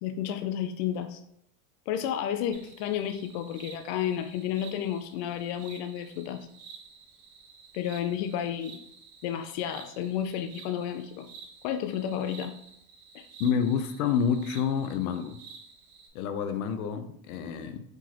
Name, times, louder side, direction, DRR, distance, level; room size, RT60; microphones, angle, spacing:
voice 1, 0.0-1.2 1.9-6.5 7.7-8.8 9.2-11.3 11.6-12.5 13.1-13.3, left 9 dB, 55° left, 7 dB, 0.5 m, -31 dB
sound 1, 2.5-16.1, right 5 dB, 50° right, 1.7 m, -51 dB
voice 2, 13.4-15.4 16.1-17.8, left 7 dB, 85° left, 9 dB, 0.7 m, -28 dB
4.7 x 3.8 x 2.9 m, 0.74 s
supercardioid pair, 155°, 42 cm